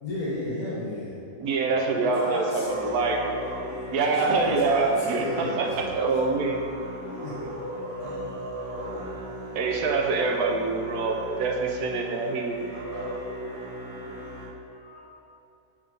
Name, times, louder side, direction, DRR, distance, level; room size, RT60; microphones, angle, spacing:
voice 1, 0.0-1.2 1.5-2.7 4.0-6.0 7.2-7.5, left 1 dB, 70° left, -7 dB, 1.8 m, -34 dB
voice 2, 1.4-3.3 3.9-6.6 9.5-12.6, right 3 dB, 85° right, 2 dB, 1.3 m, -25 dB
Musical instrument, 2.6-14.5, equal, 30° left, 1.6 m, -37 dB
voice 3, 13.4-15.2, left 2 dB, 70° right, -3 dB, 1.7 m, -51 dB
8.5 x 3.6 x 5.3 m, 2.6 s
omnidirectional pair, 1.6 m